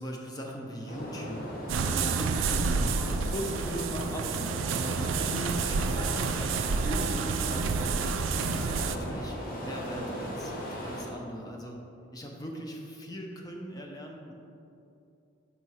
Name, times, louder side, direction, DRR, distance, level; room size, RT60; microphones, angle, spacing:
voice 1, 0.0-1.4 1.8-2.8 3.3-8.2 8.4-11.8 12.1-14.3, equal, 20° left, 1 dB, 0.6 m, -39 dB
sound 1, 0.9-11.1, equal, 45° left, 1.0 m, -38 dB
sound 2, 1.7-9.0, right 5 dB, 70° right, 0.3 m, -29 dB
5.5 x 4.2 x 4.7 m, 2.7 s
head